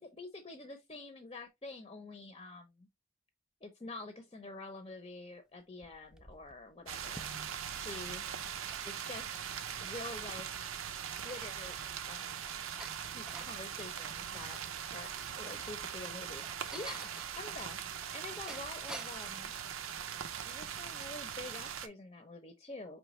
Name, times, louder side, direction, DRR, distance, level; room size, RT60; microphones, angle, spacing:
voice 1, 0.0-2.9 3.6-7.3 7.7-8.2 8.8-9.3 9.8-10.5 10.8-10.9 11.2-11.8 12.0-12.4 13.1-14.6 14.9-15.1 15.4-17.1 17.4-17.8 18.1-19.5 20.4-23.0, left 2 dB, 25° left, 0.7 m, -47 dB
sound 1, 5.6-7.8 8.4-10.1 10.5-10.6 11.0-13.6 15.3-19.3, right 1 dB, 5° right, 0.3 m, -52 dB
sound 2, 6.9-21.9, right 8 dB, 80° right, 0.6 m, -41 dB
5.0 x 3.2 x 3.1 m
head